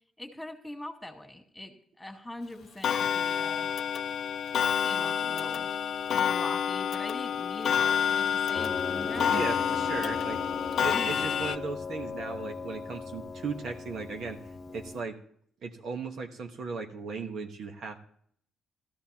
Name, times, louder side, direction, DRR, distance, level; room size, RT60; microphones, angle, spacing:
voice 1, 0.2-3.7 4.8-5.7 6.1-9.5 10.9-11.1, left 1 dB, 5° left, 4 dB, 2.2 m, -42 dB
Clock, 2.8-11.6, left 8 dB, 65° left, 0.5 m, -28 dB
Piano, 8.5-15.0, left 4 dB, 40° left, 1.0 m, -38 dB
voice 2, 9.1-10.4 10.8-14.4 14.7-15.2 15.6-18.0, right 4 dB, 65° right, 4 dB, 1.3 m, -36 dB
17.0 x 14.0 x 2.9 m, 0.64 s
cardioid pair, 90°, 0 cm